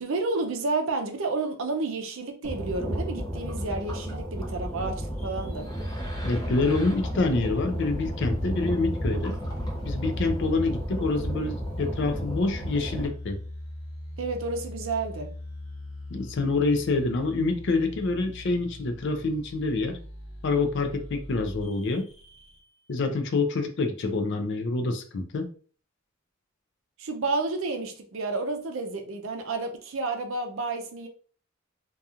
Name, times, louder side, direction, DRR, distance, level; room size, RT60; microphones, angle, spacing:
voice 1, 0.0-5.7 14.2-15.3 27.0-31.1, right 3 dB, 65° right, 4 dB, 0.5 m, -30 dB
sound 1, 2.4-13.1, equal, 15° left, 0.7 m, -32 dB
sound 2, 4.3-22.9, left 1 dB, 75° left, 0.8 m, -41 dB
voice 2, 6.2-9.4 9.9-13.4 16.1-20.0 20.4-22.1 22.9-25.5, left 3 dB, 55° left, 7 dB, 0.4 m, -27 dB
2.8 x 2.3 x 2.4 m, 0.41 s
head